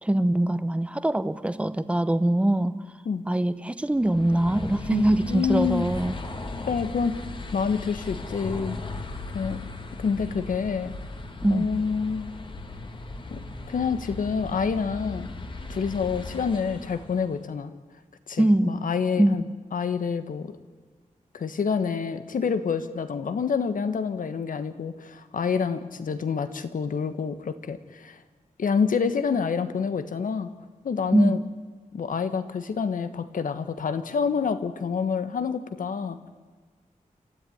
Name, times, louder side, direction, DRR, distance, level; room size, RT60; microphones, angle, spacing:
voice 1, 0.0-2.8 3.3-6.1 11.4-11.7 18.4-18.9 19.2-19.4 31.1-31.4, right 1 dB, 10° right, 14 dB, 0.8 m, -23 dB
sound 1, 3.9-17.4, left 2 dB, 35° left, 1.8 m, -37 dB
voice 2, 4.9-5.9 6.7-7.2 7.5-8.8 9.3-9.6 10.0-10.9 11.5-12.3 13.3-13.4 13.7-15.3 15.7-17.7 18.3-19.4 19.7-20.5 21.3-28.2 28.6-30.5 30.8-31.4 31.9-36.3, left 6 dB, 85° left, 11 dB, 1.5 m, -27 dB
29.5 x 13.5 x 9.6 m, 1.4 s
wide cardioid pair, 160°, 14 cm